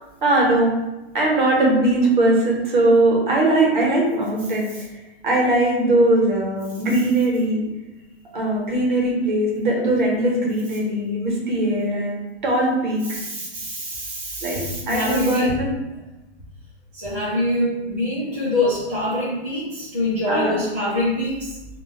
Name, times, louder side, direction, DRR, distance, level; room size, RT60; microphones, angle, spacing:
voice 1, 0.2-0.7 1.1-4.7 5.2-7.6 8.3-13.2 14.4-15.7 20.3-20.5, right 1 dB, 45° right, -2 dB, 0.8 m, -20 dB
voice 2, 13.1-15.6 16.9-21.5, left 1 dB, 15° right, -13 dB, 0.5 m, -25 dB
2.4 x 2.2 x 3.9 m, 1.0 s
hypercardioid pair, 175°, 33 cm